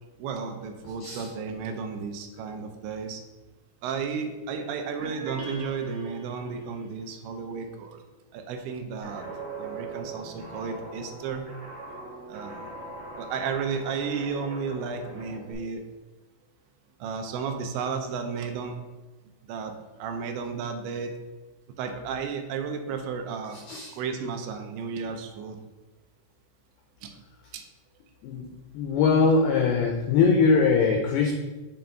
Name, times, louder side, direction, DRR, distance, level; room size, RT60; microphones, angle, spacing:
voice 1, 0.2-3.2 3.8-8.0 8.3-9.3 9.6-11.5 12.3-12.7 13.2-15.8 17.0-18.8 19.5-21.1 21.8-23.6 23.9-25.6 27.0-27.1 27.5-27.6, right 5 dB, 80° right, 5 dB, 2.9 m, -33 dB
sound 1, 5.0-6.8, right 3 dB, 55° right, 3.2 m, -42 dB
Guitar, 9.0-15.5, right 2 dB, 35° right, 1.8 m, -41 dB
voice 2, 28.7-31.3, left 4 dB, 85° left, 0 dB, 2.2 m, -22 dB
7.6 x 3.9 x 4.4 m, 1.2 s
omnidirectional pair, 5.3 m